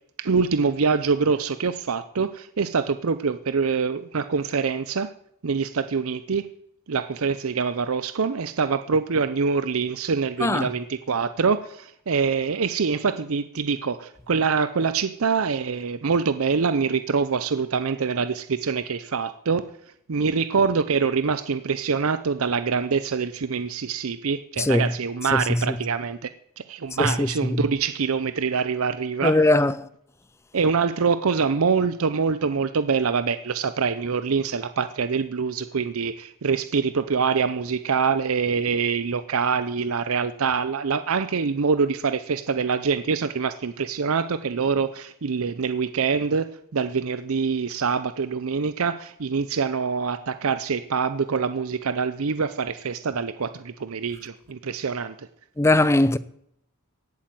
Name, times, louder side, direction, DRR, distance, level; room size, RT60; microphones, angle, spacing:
voice 1, 0.2-5.1 5.4-6.5 6.9-19.7 20.1-26.3 26.6-29.4 30.5-55.3, right 5 dB, 75° right, 0.6 m, -25 dB
voice 2, 24.6-24.9 25.3-25.4 27.0-27.6 29.2-29.7 55.6-56.2, left 2 dB, 15° left, 0.5 m, -20 dB
17.0 x 8.7 x 7.6 m
head